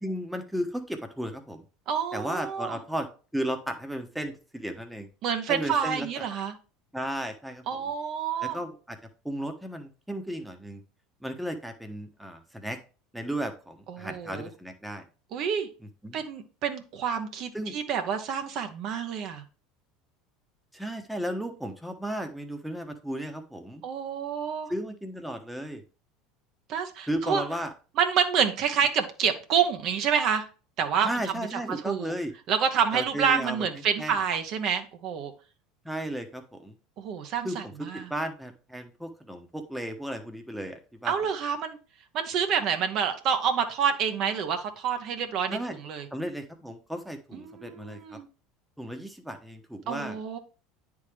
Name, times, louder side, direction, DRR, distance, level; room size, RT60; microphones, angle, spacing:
voice 1, 0.0-1.6 2.1-3.1 3.3-5.1 5.5-6.3 6.9-7.8 8.4-9.0 9.2-10.8 11.2-12.8 13.1-15.0 16.0-16.2 17.5-17.7 20.7-23.8 24.7-25.8 27.1-27.7 31.0-32.3 32.9-33.6 34.0-34.1 35.8-36.7 37.4-41.1 45.5-45.8 46.1-48.2 48.8-50.2, right 1 dB, 5° right, 6 dB, 1.0 m, -34 dB
voice 2, 1.9-2.8 5.2-6.5 7.7-8.6 13.9-14.5 15.3-15.7 16.1-19.4 23.8-24.7 26.7-27.4 28.0-30.5 30.8-32.1 32.5-35.3 37.0-38.1 41.0-41.8 42.1-45.6 45.8-46.1 47.3-48.3 49.9-50.4, right 7 dB, 55° right, 6 dB, 0.8 m, -28 dB
9.3 x 3.5 x 3.3 m, 0.36 s
hypercardioid pair, 75°, 0 cm